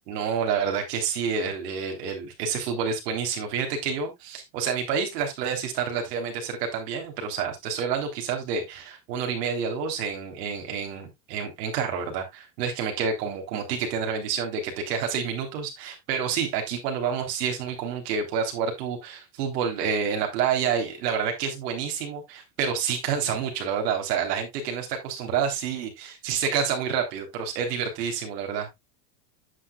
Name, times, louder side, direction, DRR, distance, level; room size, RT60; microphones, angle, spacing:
voice 1, 0.1-28.7, right 6 dB, 75° right, 3.6 m, -28 dB
10.0 x 7.8 x 2.3 m
supercardioid pair, 140°, 48 cm